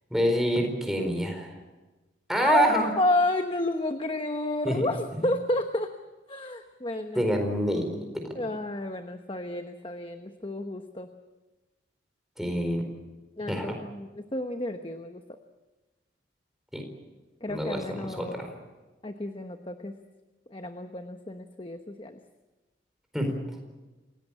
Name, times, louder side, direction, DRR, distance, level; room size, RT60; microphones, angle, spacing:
voice 1, 0.1-1.6 2.3-2.9 4.6-4.8 5.2-5.3 7.1-8.2 12.4-12.8 13.5-13.7 16.7-16.8 17.5-18.5 23.1-23.3, equal, ahead, 3 dB, 4.3 m, -27 dB
voice 2, 2.3-5.9 6.3-7.3 8.3-11.1 13.4-15.2 17.4-18.4 19.0-19.9 20.5-22.2, left 2 dB, 25° left, 6 dB, 1.0 m, -31 dB
28.0 x 17.5 x 8.7 m, 1.2 s
head